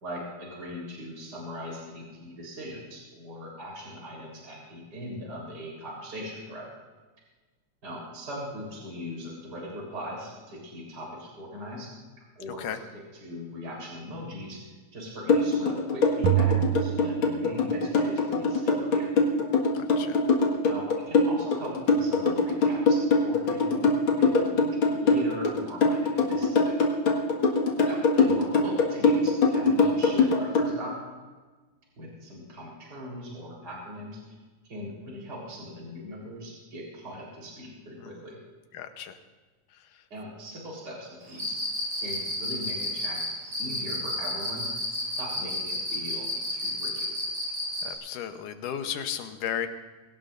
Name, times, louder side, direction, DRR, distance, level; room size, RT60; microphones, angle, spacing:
voice 1, 0.0-6.7 7.8-11.9 12.4-19.1 20.6-26.7 27.8-31.0 32.0-34.3 34.6-38.4 40.1-41.6 42.0-43.2 43.6-44.8 45.2-47.1, equal, 30° right, -2 dB, 4.2 m, -40 dB
sound 1, 15.3-30.7, left 4 dB, 45° left, 2.2 m, -22 dB
sound 2, 16.2-18.0, right 16 dB, 85° right, 2.1 m, -27 dB
voice 2, 19.7-20.2 38.0-38.1 38.7-39.2 47.8-49.7, left 9 dB, 85° left, 8 dB, 2.5 m, -34 dB
Cricket, 41.3-47.9, left 1 dB, 55° right, 4.5 m, -31 dB
22.0 x 18.0 x 2.6 m, 1.3 s
omnidirectional pair, 3.6 m